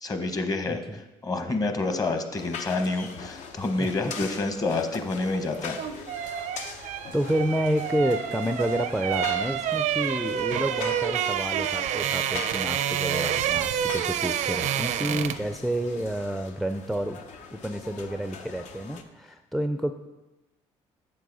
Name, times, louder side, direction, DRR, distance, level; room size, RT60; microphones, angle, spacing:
voice 1, 0.0-5.8, left 3 dB, 30° left, 7 dB, 1.0 m, -28 dB
voice 2, 0.7-1.0 3.8-3.9 6.8-17.2 17.5-19.9, equal, ahead, 7 dB, 0.4 m, -29 dB
sound 1, 2.3-19.0, left 5 dB, 65° left, 0.8 m, -42 dB
sound 2, 5.5-15.5 15.8-16.0, right 10 dB, 70° right, 0.5 m, -28 dB
7.5 x 6.7 x 4.0 m, 1.1 s
supercardioid pair, 75°, 13 cm